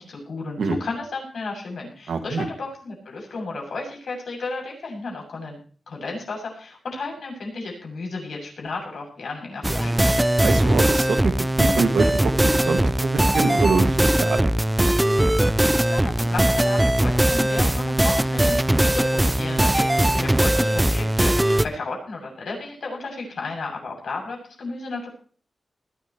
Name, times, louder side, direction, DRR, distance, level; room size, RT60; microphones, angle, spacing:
voice 1, 0.0-5.6 5.9-9.9 15.8-25.1, left 3 dB, 80° left, 0 dB, 7.6 m, -33 dB
voice 2, 2.1-2.5 10.4-14.5, right 4 dB, 85° right, 6 dB, 2.0 m, -25 dB
sound 1, 9.6-21.6, right 1 dB, 10° right, 0.7 m, -20 dB
20.5 x 12.5 x 3.1 m, 0.42 s
wide cardioid pair, 90°, 0 cm